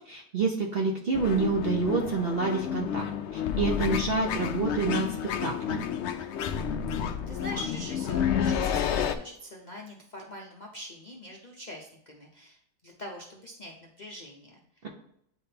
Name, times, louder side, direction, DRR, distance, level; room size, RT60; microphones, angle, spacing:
voice 1, 0.1-3.1 3.3-5.2 5.4-5.9, right 4 dB, 50° right, 0 dB, 0.8 m, -28 dB
sound 1, 1.1-9.1, left 8 dB, 85° left, 0.6 m, -30 dB
voice 2, 7.0-14.6, left 1 dB, 40° left, -2 dB, 0.6 m, -43 dB
9.4 x 3.5 x 2.8 m, 0.70 s
omnidirectional pair, 1.7 m